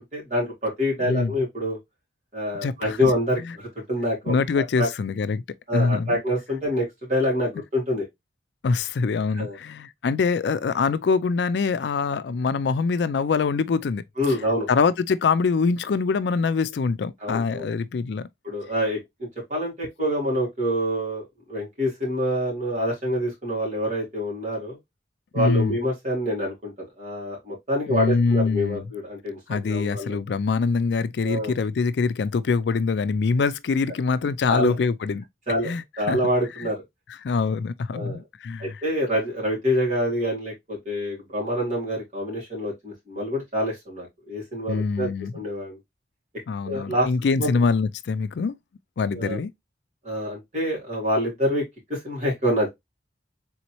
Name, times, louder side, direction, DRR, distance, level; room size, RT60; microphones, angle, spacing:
voice 1, 0.1-1.8 2.3-4.9 5.7-8.1 9.4-9.6 14.2-14.7 17.2-17.7 18.4-19.0 19.5-21.2 21.5-24.8 25.3-30.2 31.2-31.5 34.5-34.7 35.5-36.8 37.9-38.2 38.6-45.8 46.6-47.1 47.4-47.5 49.1-49.4 50.0-51.6 51.9-52.7, equal, 45° right, 2.9 m, -26 dB
voice 2, 1.0-1.3 2.6-3.1 3.4-3.6 4.3-5.4 5.7-6.2 8.6-18.3 25.3-25.8 27.9-28.9 29.5-35.2 35.6-36.2 36.6-36.7 37.2-38.8 44.7-45.4 46.5-48.5 49.0-49.5, left 4 dB, 75° left, 0.4 m, -24 dB
4.1 x 3.8 x 2.9 m
head